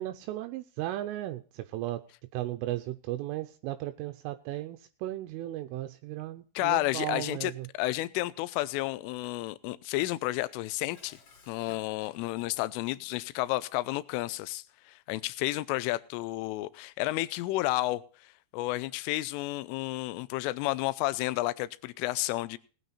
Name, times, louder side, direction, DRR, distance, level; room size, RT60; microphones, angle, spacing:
voice 1, 0.0-2.0 2.3-7.7, right 15 dB, 80° right, 7 dB, 3.2 m, -36 dB
voice 2, 6.6-11.2 11.5-18.0 18.5-22.6, left 18 dB, 80° left, 16 dB, 3.2 m, -31 dB
Dishes pots and pans, 10.5-12.9, left 4 dB, 40° left, 2.6 m, -58 dB
18.5 x 9.3 x 4.1 m, 0.39 s
omnidirectional pair, 5.8 m